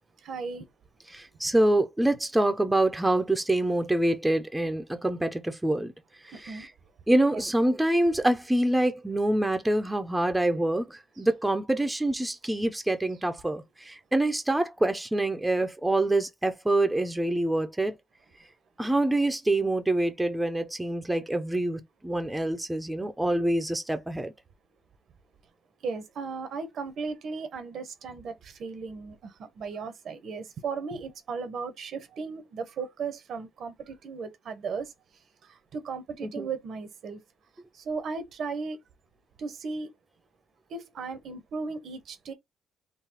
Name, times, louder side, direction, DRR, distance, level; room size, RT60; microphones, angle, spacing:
voice 1, 0.2-0.7 6.3-6.7 7.3-7.4 25.8-34.9 35.7-37.2 37.8-38.8 39.4-39.9 40.7-42.3, right 4 dB, 65° right, 1.0 m, -36 dB
voice 2, 1.1-5.9 6.4-6.7 7.1-18.0 18.8-24.3 36.2-36.5, right 1 dB, 10° right, 0.8 m, -26 dB
3.9 x 2.3 x 4.3 m
cardioid pair, 90°, 0 cm